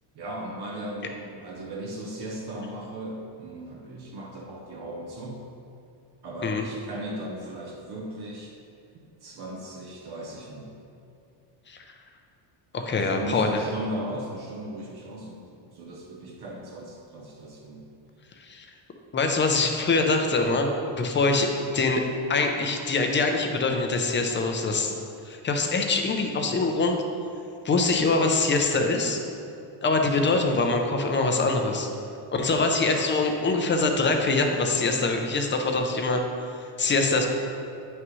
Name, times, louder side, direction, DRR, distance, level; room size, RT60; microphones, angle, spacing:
voice 1, 0.1-5.4 6.2-8.5 8.9-10.7 12.9-15.4 15.7-17.9 32.4-32.7, right 1 dB, 50° right, -2 dB, 0.9 m, -37 dB
voice 2, 12.7-13.5 18.4-18.7 19.1-22.0 22.3-24.9 25.3-27.0 27.6-29.2 29.8-31.9 32.3-36.2 36.5-37.3, left 3 dB, 25° left, 4 dB, 0.5 m, -24 dB
9.2 x 6.1 x 3.1 m, 2.6 s
cardioid pair, 160°, 48 cm